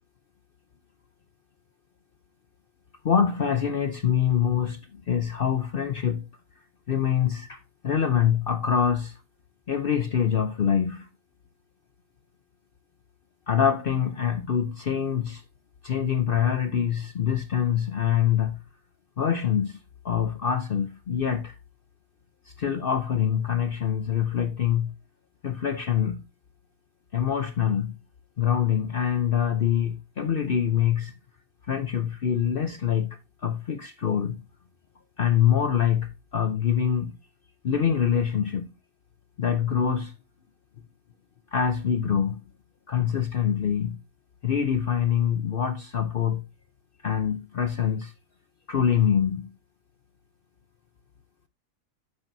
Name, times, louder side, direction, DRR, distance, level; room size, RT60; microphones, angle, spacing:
voice 1, 3.0-6.3 6.9-9.2 9.7-11.1 13.5-15.4 15.8-18.6 19.2-19.8 20.0-21.5 22.5-24.9 25.4-26.2 27.1-28.0 28.4-31.2 31.6-34.4 35.2-37.2 37.6-38.7 39.4-40.1 41.5-42.4 42.9-44.0 44.4-46.4 47.0-48.1 48.7-49.5, left 8 dB, 50° left, 0.8 m, -25 dB
10.5 x 8.0 x 2.6 m
omnidirectional pair, 1.4 m